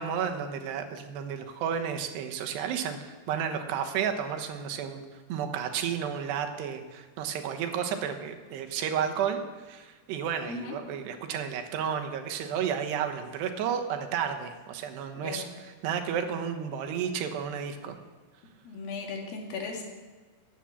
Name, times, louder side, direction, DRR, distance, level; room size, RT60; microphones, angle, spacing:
voice 1, 0.0-5.0 5.3-18.0, right 8 dB, 85° right, 5 dB, 3.2 m, -32 dB
voice 2, 15.2-15.5 18.7-19.8, left 4 dB, 65° left, 1 dB, 3.6 m, -37 dB
15.0 x 10.0 x 7.3 m, 1.3 s
omnidirectional pair, 4.8 m